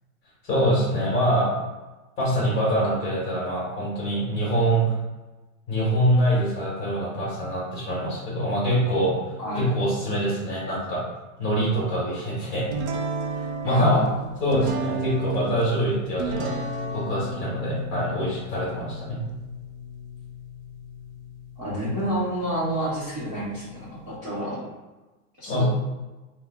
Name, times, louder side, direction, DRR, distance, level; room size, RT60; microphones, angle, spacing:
voice 1, 0.4-1.5 2.2-4.9 5.7-11.0 11.4-12.7 13.3-14.0 14.4-16.5 16.9-19.2 25.5-25.6, equal, 25° left, -6 dB, 1.1 m, -24 dB
sound 1, 12.7-24.2, right 2 dB, 50° right, 0.4 m, -34 dB
voice 2, 13.6-14.1 21.6-24.6 25.4-25.6, equal, 15° right, -11 dB, 0.8 m, -29 dB
3.3 x 2.1 x 3.5 m, 1.1 s
supercardioid pair, 160°, 45 cm